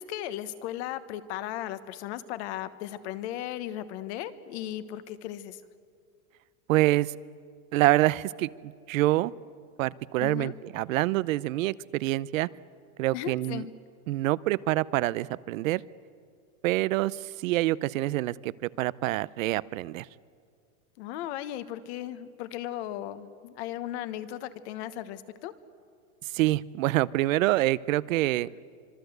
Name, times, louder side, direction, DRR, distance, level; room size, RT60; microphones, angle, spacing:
voice 1, 0.0-5.6 10.2-10.5 13.1-13.7 21.0-25.5, left 12 dB, 50° left, 12 dB, 1.3 m, -36 dB
voice 2, 6.7-7.1 7.7-9.3 9.8-12.5 13.0-13.7 14.1-15.8 16.6-20.1 26.4-28.5, right 17 dB, 65° right, 20 dB, 0.7 m, -26 dB
25.5 x 24.5 x 8.1 m, 2.2 s
supercardioid pair, 165°, 44 cm